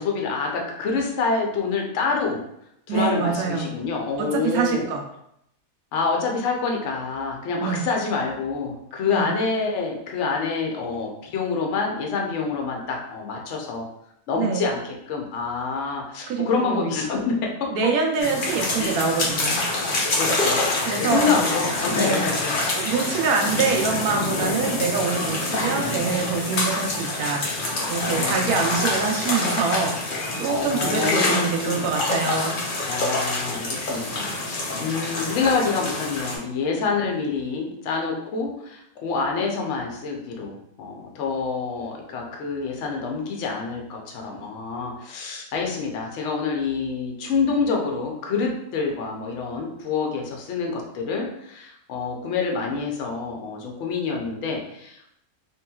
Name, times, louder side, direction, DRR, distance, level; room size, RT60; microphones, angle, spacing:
voice 1, 0.0-2.4 2.9-4.8 5.9-13.9 14.3-14.8 15.1-17.7 18.8-19.0 20.1-20.6 21.0-22.5 23.1-23.3 28.1-28.9 30.5-31.9 32.9-55.2, left 4 dB, 60° left, 0 dB, 0.8 m, -27 dB
voice 2, 2.9-3.7 4.2-5.0 7.6-7.8 9.1-9.3 14.4-14.6 16.3-16.9 17.7-19.7 20.8-21.4 21.9-22.3 22.6-27.5 27.9-32.6, right 5 dB, 75° right, 2 dB, 1.0 m, -25 dB
sound 1, 18.2-36.4, left 2 dB, 80° left, 0.4 m, -26 dB
3.0 x 2.9 x 2.3 m, 0.76 s
omnidirectional pair, 1.7 m